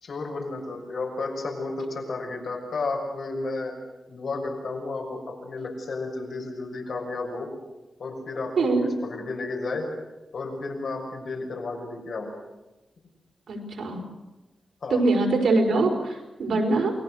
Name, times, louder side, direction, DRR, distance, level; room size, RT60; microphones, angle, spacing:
voice 1, 0.0-3.7 4.1-7.5 8.0-9.9 10.3-12.3 14.8-15.0, left 3 dB, 55° left, 2 dB, 6.5 m, -32 dB
voice 2, 8.6-8.9 13.5-14.0 14.9-16.9, right 3 dB, 70° right, 1 dB, 5.6 m, -23 dB
29.0 x 21.0 x 6.6 m, 1.0 s
wide cardioid pair, 160°, 0 cm